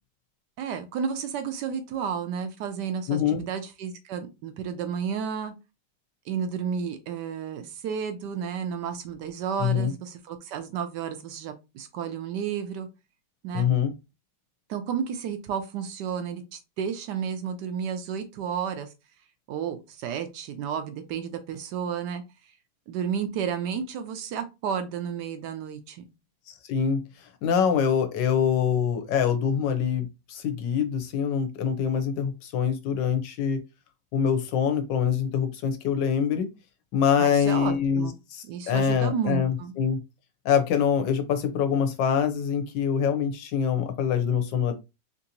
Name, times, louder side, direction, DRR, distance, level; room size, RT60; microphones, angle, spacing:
voice 1, 0.6-5.5 6.3-12.9 13.4-13.7 14.7-18.9 19.5-22.2 22.9-26.1 37.2-38.2 38.4-39.7, right 7 dB, 75° right, 1.2 m, -32 dB
voice 2, 3.1-3.4 9.6-9.9 13.5-13.9 26.5-33.6 34.1-36.5 36.9-40.0 40.4-44.8, left 7 dB, 85° left, 1.4 m, -25 dB
3.9 x 2.6 x 2.8 m
omnidirectional pair, 1.9 m